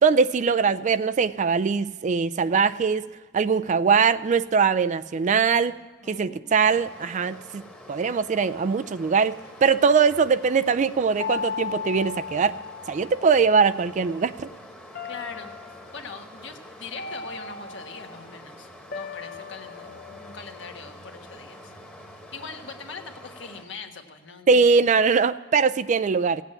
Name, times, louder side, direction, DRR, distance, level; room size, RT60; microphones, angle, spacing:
voice 1, 0.0-3.1 3.3-5.8 6.1-7.6 7.9-12.5 12.9-14.5 24.5-26.4, right 5 dB, 40° right, 15 dB, 0.3 m, -21 dB
voice 2, 6.0-6.7 15.0-15.5 15.9-21.7 22.1-24.8, left 4 dB, 70° left, 4 dB, 1.3 m, -42 dB
Stream, 6.6-23.6, left 1 dB, 5° left, 1.2 m, -46 dB
sound 1, 11.2-13.5 14.9-16.0 17.0-18.2 18.9-21.3, left 6 dB, 50° left, 0.8 m, -37 dB
16.5 x 8.2 x 8.7 m, 1.3 s
head